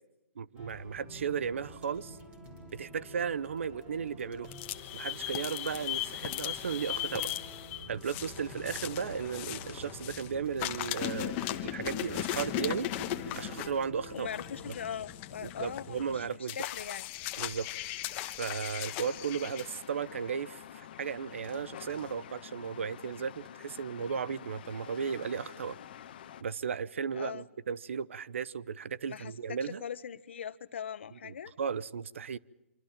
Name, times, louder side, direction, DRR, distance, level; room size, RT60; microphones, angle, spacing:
voice 1, 0.4-2.2 2.7-4.5 4.9-7.3 7.9-12.9 13.4-14.3 15.4-16.6 17.4-17.7 18.4-25.8 26.4-29.8 31.2-32.4, right 6 dB, 65° right, 20 dB, 0.8 m, -35 dB
sound 1, 0.6-15.9, equal, 15° right, 4.5 m, -49 dB
sound 2, 4.4-10.3 10.6-19.8, left 14 dB, 25° left, 1.2 m, -37 dB
voice 2, 14.1-17.1 27.1-27.4 29.1-31.5, left 8 dB, 60° left, 14 dB, 1.2 m, -41 dB
sound 3, 18.8-26.4, left 10 dB, 45° left, 1.3 m, -48 dB
26.0 x 24.5 x 7.4 m, 0.99 s
hypercardioid pair, 160°, 7 cm